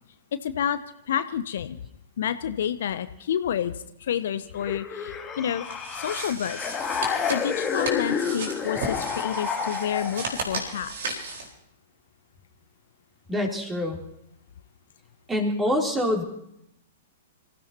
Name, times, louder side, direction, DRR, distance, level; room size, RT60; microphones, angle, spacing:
voice 1, 0.4-0.8 1.1-1.8 2.2-5.7 5.9-6.7 7.3-10.9, left 9 dB, 60° left, 12 dB, 0.7 m, -29 dB
sound 1, 4.6-10.4, left 6 dB, 20° left, 1.8 m, -30 dB
sound 2, 5.6-11.5, right 3 dB, 60° right, 4.2 m, -35 dB
voice 2, 13.3-14.0 15.3-16.2, left 1 dB, 10° right, 2 dB, 3.3 m, -25 dB
26.5 x 15.5 x 2.9 m, 0.77 s
figure-of-eight pair, 105°, 0 cm